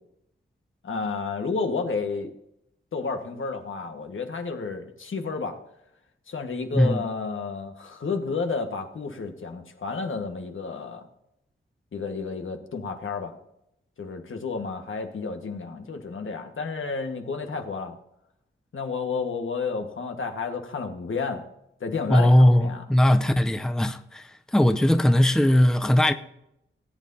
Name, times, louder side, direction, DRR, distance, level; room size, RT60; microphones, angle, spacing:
voice 1, 0.8-2.3 2.9-5.6 6.3-11.0 11.9-13.3 14.0-17.9 18.7-21.4 21.8-22.8, left 4 dB, 75° left, 1.6 m, -31 dB
voice 2, 22.1-26.1, left 1 dB, 5° left, 0.6 m, -19 dB
18.5 x 8.9 x 2.8 m
wide cardioid pair, 110°, 21 cm